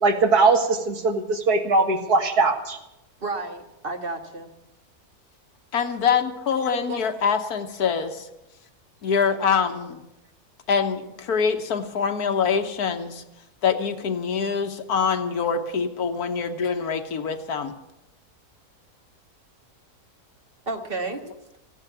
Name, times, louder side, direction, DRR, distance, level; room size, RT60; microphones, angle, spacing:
voice 1, 0.0-2.8, right 3 dB, 80° right, 5 dB, 2.2 m, -20 dB
voice 2, 3.2-4.5 6.9-7.3 20.7-21.2, right 2 dB, 35° right, 4 dB, 1.8 m, -32 dB
voice 3, 5.7-8.3 9.0-10.0 10.7-13.2 13.6-17.7, left 6 dB, 75° left, 7 dB, 1.7 m, -24 dB
15.5 x 10.5 x 8.5 m, 0.91 s
omnidirectional pair, 1.7 m